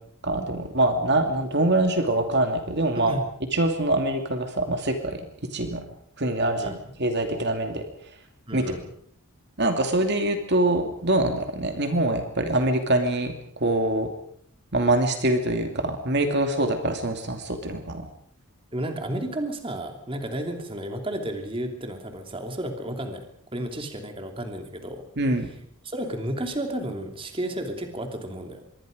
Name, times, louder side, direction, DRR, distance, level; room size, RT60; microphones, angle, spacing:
voice 1, 0.2-3.2 3.5-5.3 5.5-5.8 6.2-7.8 8.5-8.6 9.6-14.1 14.7-18.0 25.2-25.5, right 1 dB, 50° right, 5 dB, 2.6 m, -24 dB
voice 2, 2.9-3.2 6.6-6.8 8.5-8.8 18.7-23.2 23.5-25.0 25.8-28.6, right 1 dB, 25° right, 5 dB, 2.9 m, -32 dB
25.5 x 23.0 x 5.2 m, 0.63 s
head